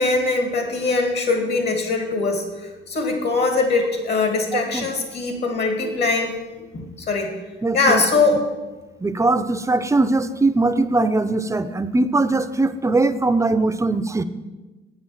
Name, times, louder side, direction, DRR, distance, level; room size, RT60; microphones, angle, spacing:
voice 1, 0.0-2.4 2.9-6.3 6.7-7.3 7.7-8.4, left 3 dB, 60° left, 4 dB, 2.6 m, -21 dB
voice 2, 4.5-4.9 7.6-8.0 9.0-14.2, right 2 dB, 15° right, 10 dB, 0.6 m, -20 dB
8.2 x 7.8 x 7.3 m, 1.2 s
cardioid pair, 90°, 20 cm